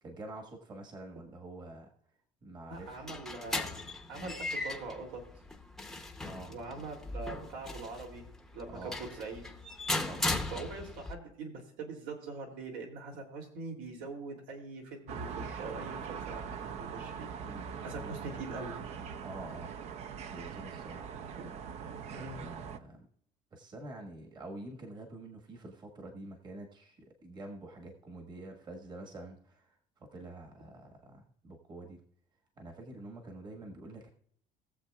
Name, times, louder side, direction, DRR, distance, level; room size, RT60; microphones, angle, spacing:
voice 1, 0.0-1.9 2.4-3.2 4.1-4.3 6.2-6.5 8.7-9.0 10.0-10.4 17.4-18.4 19.2-19.8 20.3-21.2 22.1-23.1 23.5-32.0 32.6-34.1, right 2 dB, 30° right, 2 dB, 1.5 m, -47 dB
sound 1, 2.7-11.1, left 2 dB, 5° left, 0.8 m, -38 dB
voice 2, 2.7-3.7 4.1-5.3 6.5-8.2 8.5-9.4 10.5-17.3 17.8-18.8 21.3-21.5 22.1-22.5, right 3 dB, 80° right, 2 dB, 2.8 m, -43 dB
sound 2, 15.1-22.8, right 6 dB, 45° right, 0.6 m, -42 dB
20.0 x 7.3 x 2.3 m, 0.67 s
cardioid pair, 155°, 15 cm